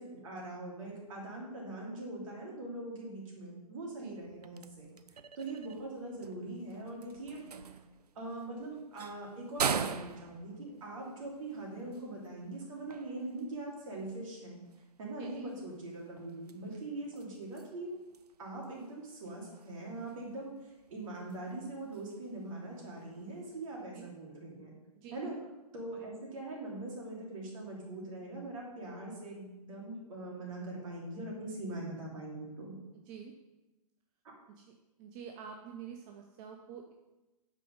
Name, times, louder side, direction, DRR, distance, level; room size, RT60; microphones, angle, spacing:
voice 1, 0.0-4.9 5.3-7.7 8.1-14.6 15.0-17.9 18.4-24.7 25.1-25.4 25.7-32.7, right 2 dB, 55° right, -2 dB, 3.1 m, -42 dB
sound 1, 4.1-23.7, right 6 dB, 80° right, 0.6 m, -44 dB
voice 2, 15.2-15.5 23.9-24.1 25.0-25.3 32.9-33.5 34.5-36.9, right 7 dB, 30° right, 3 dB, 0.6 m, -48 dB
8.4 x 5.3 x 5.3 m, 1.0 s
figure-of-eight pair, 125°, 20 cm